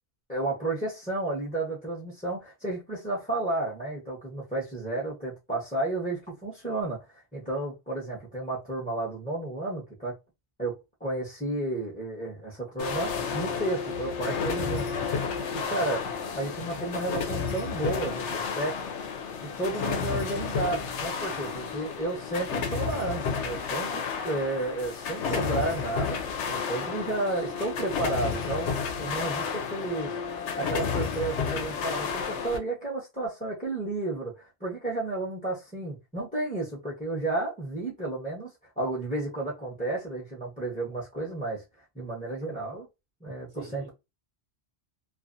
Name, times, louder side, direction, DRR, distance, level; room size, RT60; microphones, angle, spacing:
voice 1, 0.3-10.2 10.6-14.9 15.5-16.1 16.3-18.8 19.6-30.2 30.6-38.5 38.8-41.6 41.9-42.9 43.2-43.9, right 2 dB, 10° left, 0.8 m, -32 dB
sound 1, 12.8-32.6, left 5 dB, 85° left, 0.9 m, -31 dB
voice 2, 21.3-21.6 43.5-43.9, right 6 dB, 75° right, 1.1 m, -47 dB
2.5 x 2.4 x 2.5 m
omnidirectional pair, 1.2 m